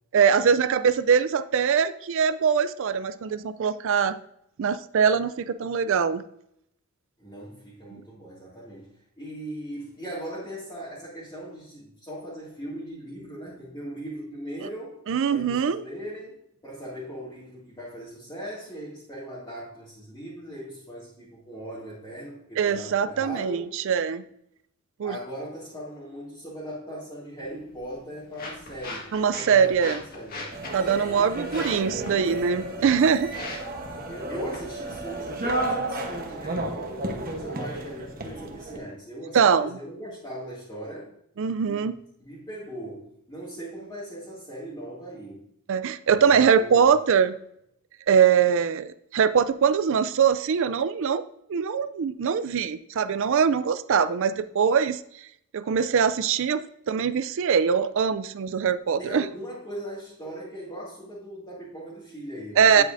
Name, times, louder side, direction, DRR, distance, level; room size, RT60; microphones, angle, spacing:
voice 1, 0.1-4.2 4.6-6.2 7.9-8.0 15.1-15.8 22.6-24.2 25.0-25.2 29.1-30.0 30.7-33.4 39.3-39.7 41.4-41.9 45.7-47.4 48.1-51.2 51.5-55.0 55.5-59.2 62.6-62.8, right 7 dB, 60° right, 13 dB, 0.4 m, -22 dB
voice 2, 7.2-15.0 15.3-23.7 25.0-30.5 31.1-32.5 34.1-41.1 41.6-41.9 42.2-45.4 46.3-46.8 59.0-62.8, right 1 dB, 20° left, -9 dB, 2.3 m, -39 dB
sound 1, 27.4-37.4, left 2 dB, 40° left, 1.6 m, -43 dB
sound 2, 30.5-38.8, right 1 dB, 40° right, 1.1 m, -33 dB
9.0 x 8.1 x 2.6 m, 0.74 s
head